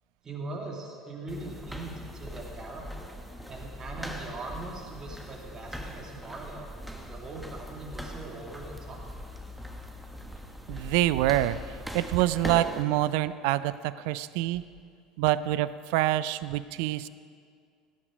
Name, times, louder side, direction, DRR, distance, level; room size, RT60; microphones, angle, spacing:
voice 1, 0.2-3.1 3.5-6.7 7.0-9.0, right 2 dB, 30° right, 0 dB, 2.8 m, -41 dB
sound 1, 1.3-12.8, equal, ahead, 1.4 m, -41 dB
voice 2, 10.7-11.6 11.9-14.6 15.2-17.1, right 15 dB, 65° right, 16 dB, 0.4 m, -26 dB
16.5 x 9.9 x 5.1 m, 2.2 s
figure-of-eight pair, 70°, 2 cm